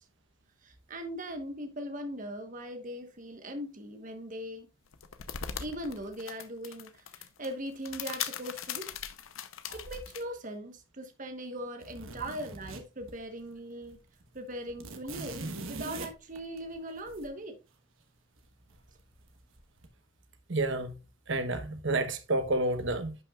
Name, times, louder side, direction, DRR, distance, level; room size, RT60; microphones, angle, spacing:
voice 1, 0.6-4.7 5.6-8.9 9.7-14.0 14.3-17.6, equal, 40° right, 1.2 m, -40 dB
sound 1, 4.9-10.2, left 8 dB, 75° left, 0.7 m, -40 dB
sound 2, 11.8-13.5 13.8-13.9 14.2-17.3 18.7-19.2 19.6-19.9, right 2 dB, 85° right, 1.3 m, -42 dB
voice 2, 20.5-21.0 21.3-23.2, right 2 dB, 60° right, 1.0 m, -30 dB
11.0 x 5.8 x 2.4 m
head